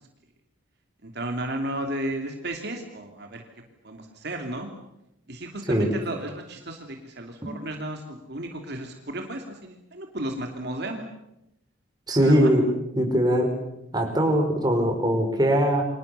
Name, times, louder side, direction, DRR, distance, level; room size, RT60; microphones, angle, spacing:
voice 1, 1.0-3.4 3.8-4.7 5.3-11.0 12.2-12.5, right 1 dB, 55° right, 3 dB, 2.9 m, -33 dB
voice 2, 12.1-12.6 13.0-13.5 13.9-15.8, equal, 20° right, 3 dB, 5.4 m, -21 dB
30.0 x 25.5 x 7.0 m, 0.87 s
head